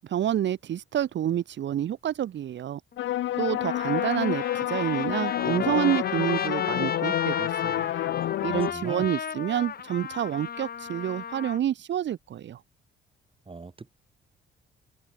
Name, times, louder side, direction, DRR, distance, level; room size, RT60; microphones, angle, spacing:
voice 1, 0.0-2.8 3.4-7.9 8.4-12.6, right 10 dB, 65° right, 2.0 m, -28 dB
Trumpet, 2.9-3.0 3.6-11.6, left 7 dB, 50° left, 6.6 m, -34 dB
sound 1, 3.0-8.7, left 13 dB, 80° left, 1.3 m, -29 dB
voice 2, 8.4-9.0 13.5-13.9, right 4 dB, 25° right, 7.3 m, -40 dB
cardioid pair, 90°, 20 cm